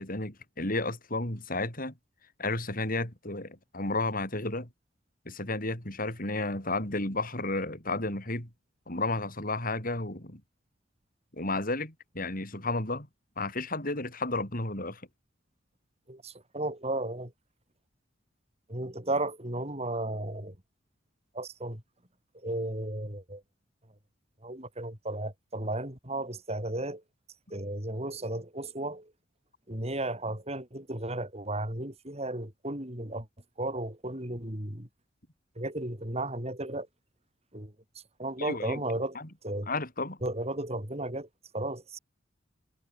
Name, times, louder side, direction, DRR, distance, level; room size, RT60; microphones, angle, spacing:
voice 1, 0.0-1.9 2.4-4.7 5.2-8.5 8.9-10.4 11.3-13.1 13.4-15.0 38.4-38.8 39.1-39.3 39.7-40.2, left 2 dB, 45° left, 6.2 m, -32 dB
voice 2, 16.1-17.3 18.7-20.6 21.3-21.8 22.3-23.4 24.4-27.0 27.5-29.1 29.7-33.3 33.6-34.9 35.5-36.9 37.5-39.2 39.4-39.7 40.2-41.3 41.5-42.0, right 1 dB, 35° right, 6.3 m, -34 dB
head